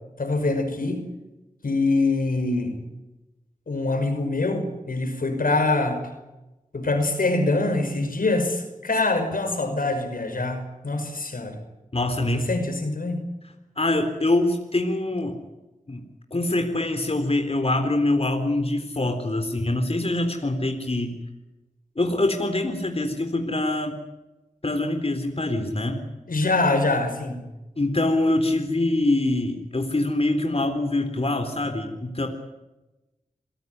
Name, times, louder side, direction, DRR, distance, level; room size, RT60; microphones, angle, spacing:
voice 1, 0.2-1.0 1.6-2.8 3.7-6.0 6.7-11.6 12.3-13.3 26.3-27.5, left 2 dB, 80° left, 6 dB, 5.7 m, -24 dB
voice 2, 11.9-12.5 13.8-15.4 15.9-21.2 22.0-24.0 24.6-26.0 27.8-32.3, left 2 dB, 45° left, 5 dB, 3.8 m, -24 dB
28.0 x 17.0 x 9.6 m, 1.0 s
cardioid pair, 40°, 14 cm